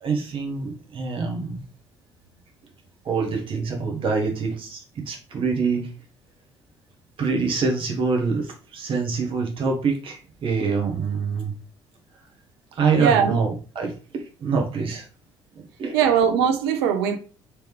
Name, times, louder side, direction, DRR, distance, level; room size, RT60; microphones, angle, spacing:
voice 1, 0.0-1.6 3.0-5.9 7.2-11.5 12.8-15.0 15.5-16.0, right 5 dB, 40° right, 0.9 m, -25 dB
voice 2, 13.0-13.4 15.9-17.2, right 8 dB, 65° right, 0.5 m, -20 dB
3.1 x 3.0 x 3.1 m
figure-of-eight pair, 50°, 14 cm